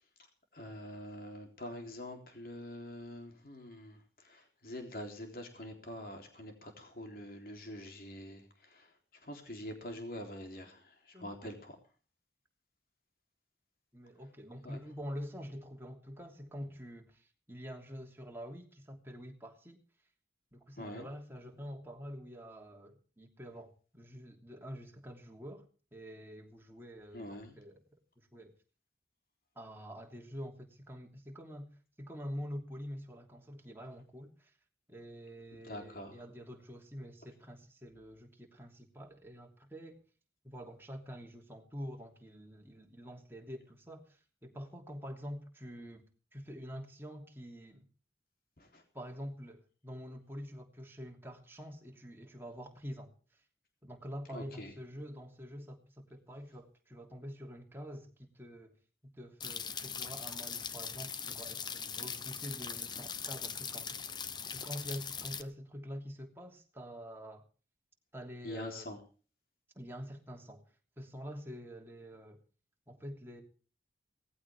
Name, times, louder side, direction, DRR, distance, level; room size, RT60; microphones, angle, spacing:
voice 1, 0.5-8.9 9.2-11.8 14.6-14.8 20.8-21.1 27.1-27.6 35.6-36.2 48.6-48.8 54.3-54.7 68.4-69.0, left 1 dB, 55° left, 4 dB, 3.6 m, -45 dB
voice 2, 11.1-11.5 13.9-19.8 20.5-25.6 25.9-27.8 28.2-28.5 29.5-31.7 32.0-34.5 34.9-40.0 40.4-46.0 46.3-47.8 48.9-53.1 53.8-58.7 59.1-63.9 64.5-67.4 68.1-68.9 69.7-70.6 71.0-72.4 72.9-73.4, equal, 15° right, 1 dB, 3.0 m, -46 dB
sound 1, 59.4-65.4, left 6 dB, 25° left, 0.9 m, -41 dB
19.0 x 15.0 x 3.6 m, 0.38 s
head